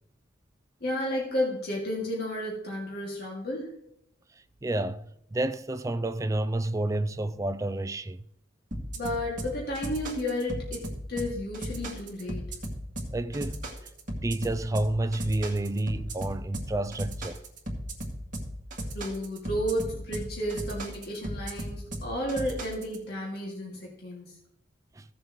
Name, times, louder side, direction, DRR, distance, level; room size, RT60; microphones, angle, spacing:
voice 1, 0.8-3.7 8.9-12.5 18.9-24.4, left 1 dB, 55° left, 2.2 m, -32 dB
voice 2, 4.6-8.2 13.1-13.6 14.2-17.4 25.0-25.1, right 1 dB, 15° right, 0.3 m, -30 dB
sound 1, 8.7-23.0, equal, 40° right, 2.1 m, -36 dB
16.0 x 7.1 x 3.1 m
head